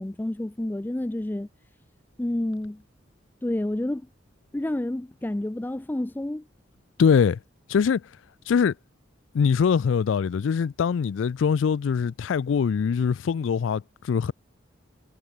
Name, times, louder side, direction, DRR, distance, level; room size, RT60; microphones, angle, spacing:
voice 1, 0.0-1.5 2.2-2.8 3.4-4.0 4.5-6.4, left 1 dB, 10° left, 0.4 m, -29 dB
voice 2, 7.0-7.4 7.7-8.0 8.5-8.7 9.3-14.3, left 6 dB, 80° left, 0.4 m, -23 dB
head